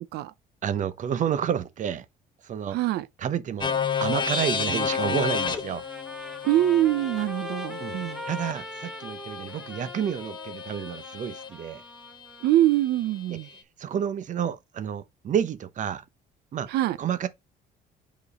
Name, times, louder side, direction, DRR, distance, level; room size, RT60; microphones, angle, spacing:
voice 1, 0.6-2.1 2.4-2.8 3.2-5.8 7.8-8.0 8.2-11.8 13.3-16.0 16.5-16.7 17.0-17.3, right 8 dB, 50° right, 0.8 m, -30 dB
voice 2, 2.7-3.1 6.4-8.2 12.4-13.5 16.7-17.0, right 13 dB, 75° right, 0.6 m, -24 dB
sound 1, 3.6-11.5, left 6 dB, 30° left, 0.9 m, -31 dB
Trumpet, 5.1-12.5, right 1 dB, ahead, 0.9 m, -42 dB
5.2 x 4.6 x 4.2 m
cardioid pair, 110°, 17 cm